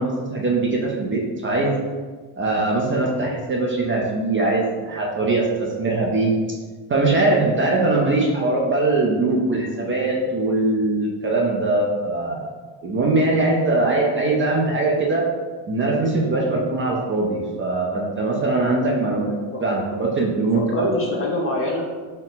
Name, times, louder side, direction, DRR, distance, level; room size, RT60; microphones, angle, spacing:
voice 1, 0.0-1.8 2.4-6.3 6.9-12.5 12.8-15.2 15.7-19.3 19.6-21.0, right 2 dB, 25° right, -2 dB, 0.4 m, -21 dB
voice 2, 18.7-19.0 19.3-19.6 20.5-21.8, left 2 dB, 30° left, -1 dB, 0.4 m, -26 dB
4.2 x 2.0 x 3.9 m, 1.4 s
cardioid pair, 125°, 49 cm